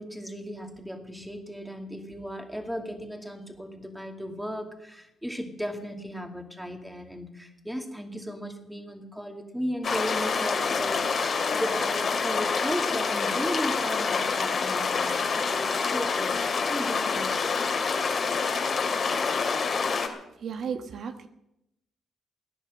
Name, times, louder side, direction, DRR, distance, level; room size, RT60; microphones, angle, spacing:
voice 1, 0.0-16.4 16.7-17.4, equal, 5° right, 5 dB, 2.5 m, -36 dB
sound 1, 9.8-20.1, left 5 dB, 45° left, 2.6 m, -27 dB
voice 2, 20.3-21.3, right 6 dB, 60° right, 8 dB, 1.2 m, -34 dB
17.0 x 10.0 x 7.8 m, 0.85 s
cardioid pair, 95°, 0 cm